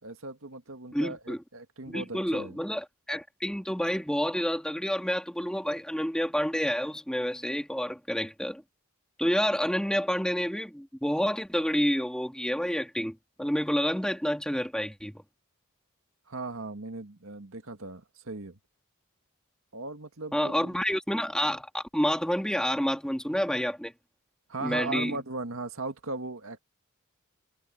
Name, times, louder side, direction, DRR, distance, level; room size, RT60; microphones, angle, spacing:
voice 1, 0.0-2.6 16.3-18.6 19.7-20.8 24.5-26.6, right 3 dB, 70° right, 1.9 m, -38 dB
voice 2, 0.9-1.4 1.9-8.6 9.2-15.1 20.3-23.9 24.6-25.2, equal, 5° left, 2.7 m, -29 dB
head